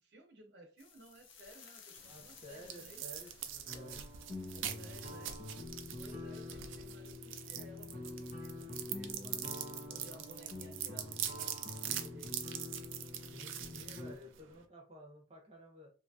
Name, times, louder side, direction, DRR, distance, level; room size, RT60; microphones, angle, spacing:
voice 1, 0.0-3.0 4.5-5.3 6.0-9.5 9.9-12.4, equal, 60° right, 3 dB, 0.8 m, -57 dB
sound 1, 0.8-5.8, left 6 dB, 80° left, 0.6 m, -59 dB
sound 2, 2.0-14.6, right 10 dB, 80° right, 0.4 m, -44 dB
voice 2, 2.1-4.1 13.3-15.9, equal, 30° right, 0 dB, 0.9 m, -53 dB
sound 3, 3.7-14.1, left 2 dB, 40° left, 0.8 m, -46 dB
2.8 x 2.4 x 2.6 m, 0.36 s
head